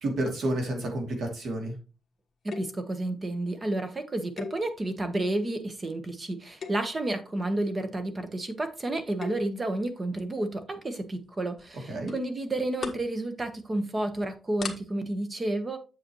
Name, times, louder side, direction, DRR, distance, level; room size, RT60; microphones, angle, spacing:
voice 1, 0.0-1.8 11.9-12.1, right 1 dB, 65° right, 2 dB, 2.6 m, -30 dB
voice 2, 2.4-15.8, right 1 dB, 25° right, 8 dB, 1.2 m, -31 dB
sound 1, 2.5-2.9 4.4-5.1 5.6-5.9 6.5-7.0 9.0-9.6 11.0-11.3 11.6-11.7 12.1-12.2 12.6-13.1 13.5-13.7 14.2-14.3 14.6-14.8, left 5 dB, 45° left, 1.4 m, -39 dB
7.9 x 7.7 x 3.1 m, 0.32 s
wide cardioid pair, 145°, 0 cm